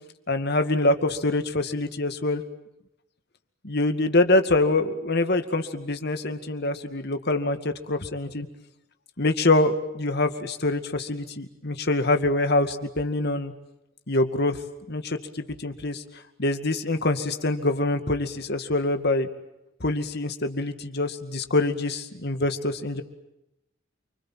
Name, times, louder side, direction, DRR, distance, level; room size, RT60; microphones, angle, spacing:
voice 1, 0.3-2.4 3.6-8.5 9.2-13.5 14.1-14.6 14.9-16.0 16.4-19.3 19.8-23.0, left 2 dB, 55° left, 8 dB, 2.2 m, -25 dB
29.5 x 25.5 x 7.6 m, 0.88 s
head